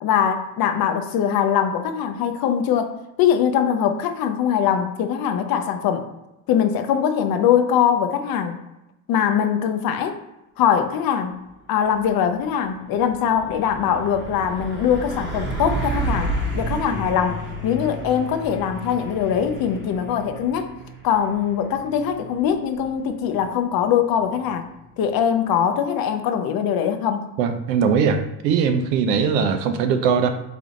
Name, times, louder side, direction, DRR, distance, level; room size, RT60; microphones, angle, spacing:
voice 1, 0.0-2.9 3.2-6.1 6.5-8.6 9.1-10.2 10.6-11.4 11.7-20.7 21.0-24.6 25.0-27.3, left 8 dB, 45° left, 7 dB, 0.6 m, -22 dB
Truck, 11.9-12.1 12.5-25.1, right 2 dB, 20° right, 1.2 m, -32 dB
voice 2, 27.4-30.3, right 6 dB, 85° right, 7 dB, 0.7 m, -20 dB
3.7 x 3.5 x 3.7 m, 0.93 s
supercardioid pair, 90°, 49 cm